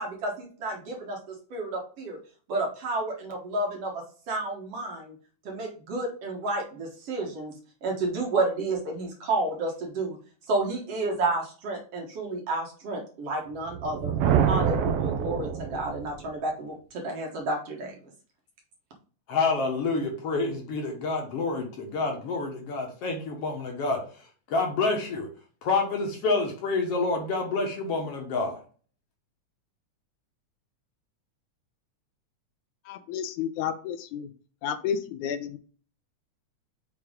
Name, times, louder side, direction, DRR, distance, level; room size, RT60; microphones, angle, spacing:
voice 1, 0.0-2.2 2.5-5.1 5.5-7.5 7.8-10.2 10.5-14.1 14.5-18.0, right 2 dB, 55° right, 1 dB, 2.2 m, -31 dB
Thunder, 13.6-16.3, right 8 dB, 85° right, 1.3 m, -26 dB
voice 2, 19.3-25.3 25.6-28.6, left 3 dB, 60° left, 2 dB, 1.9 m, -28 dB
voice 3, 32.9-34.3 34.6-35.6, left 8 dB, 85° left, 8 dB, 2.1 m, -31 dB
6.1 x 4.5 x 3.7 m, 0.40 s
omnidirectional pair, 3.5 m